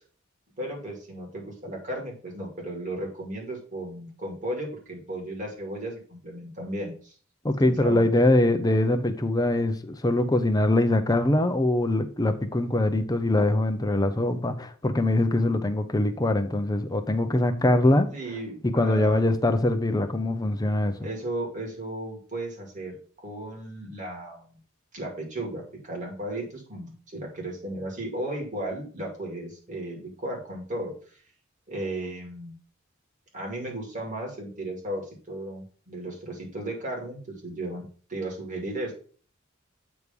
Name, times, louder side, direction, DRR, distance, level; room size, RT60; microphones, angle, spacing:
voice 1, 0.6-7.1 7.6-8.1 18.1-19.3 21.0-24.6 24.9-30.9 31.7-32.5 33.3-38.9, right 1 dB, 35° right, 2.5 m, -35 dB
voice 2, 7.4-18.1 18.6-21.0, left 1 dB, 20° left, 0.6 m, -23 dB
8.2 x 3.2 x 5.3 m
head